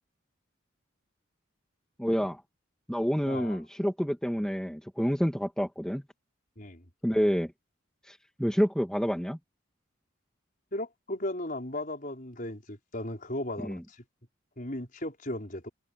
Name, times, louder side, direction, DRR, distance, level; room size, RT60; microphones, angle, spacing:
voice 1, 2.0-2.4 2.9-6.0 7.0-7.5 8.1-9.4 13.7-13.8, equal, 5° left, 2.4 m, -28 dB
voice 2, 3.3-3.6 6.6-6.9 10.7-14.0 14.6-15.7, left 1 dB, 40° left, 5.4 m, -36 dB
head